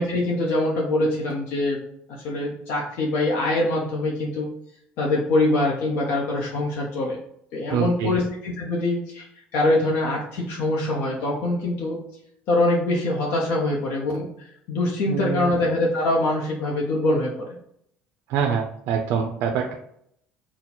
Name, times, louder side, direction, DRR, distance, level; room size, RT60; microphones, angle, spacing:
voice 1, 0.0-1.8 2.2-4.5 5.0-7.2 7.5-9.3 9.5-12.0 12.5-14.3 14.7-17.5, left 2 dB, 60° left, -3 dB, 0.8 m, -23 dB
voice 2, 7.7-8.2 15.1-15.5 18.3-19.8, right 7 dB, 65° right, 3 dB, 0.4 m, -25 dB
4.1 x 2.2 x 4.3 m, 0.72 s
cardioid pair, 145°, 4 cm